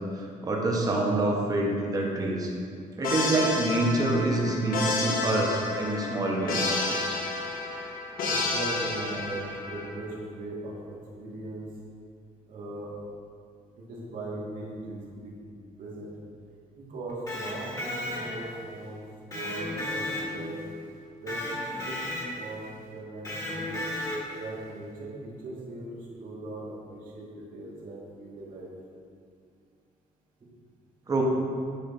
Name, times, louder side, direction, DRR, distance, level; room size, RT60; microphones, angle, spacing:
voice 1, 0.1-2.5 3.0-6.7 31.1-31.2, right 2 dB, 25° right, -1 dB, 1.4 m, -26 dB
sound 1, 3.0-9.9, left 3 dB, 75° left, 1.5 m, -30 dB
voice 2, 8.3-11.7 12.5-12.9 13.7-15.3 15.8-16.1 16.8-19.0 19.3-20.6 21.2-22.0 22.3-23.7 24.3-28.7, right 2 dB, 65° right, -5 dB, 2.4 m, -39 dB
Electric guitar, 17.1-18.6 19.3-20.7 21.3-22.5 23.2-24.5, left 1 dB, 25° left, 1.8 m, -34 dB
10.0 x 4.9 x 6.0 m, 2.3 s
cardioid pair, 165°, 15 cm